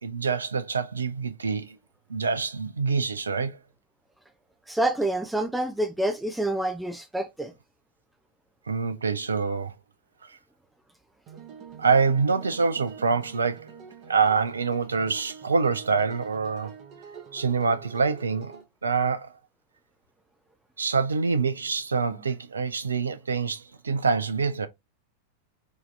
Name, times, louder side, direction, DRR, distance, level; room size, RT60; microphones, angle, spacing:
voice 1, 0.0-1.8 2.1-3.6 8.7-9.7 10.2-10.3 11.8-13.7 14.1-16.7 17.3-18.5 18.8-19.3 20.8-24.7, right 5 dB, 75° right, 0.4 m, -25 dB
voice 2, 4.7-7.5, right 1 dB, 5° right, 0.4 m, -27 dB
sound 1, 11.3-18.6, right 6 dB, 35° right, 1.0 m, -46 dB
4.6 x 2.8 x 3.2 m
figure-of-eight pair, 90°, 0 cm